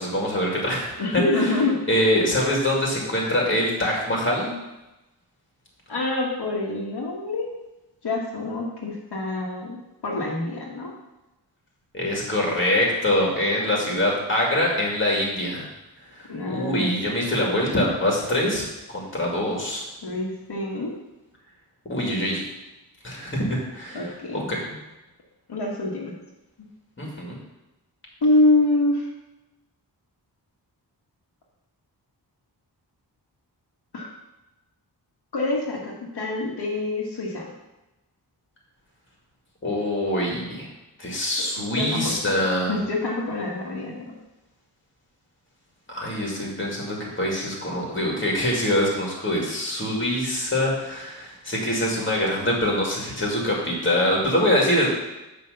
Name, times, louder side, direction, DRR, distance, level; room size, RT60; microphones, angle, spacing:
voice 1, 0.0-1.5 1.9-4.5 11.9-15.7 16.1-19.8 21.9-22.4 23.0-24.1 24.3-24.8 27.0-27.4 39.6-40.7 41.0-42.8 45.9-54.9, left 1 dB, 30° left, -2 dB, 2.0 m, -24 dB
voice 2, 1.0-1.8 5.9-7.5 8.0-10.9 16.3-16.9 20.0-20.9 23.9-24.5 25.5-26.2 28.2-29.1 33.9-34.1 35.3-37.5 41.6-42.3 42.7-44.1, left 2 dB, 70° left, -3 dB, 1.6 m, -26 dB
9.8 x 3.4 x 6.5 m, 0.99 s
wide cardioid pair, 180°, 41 cm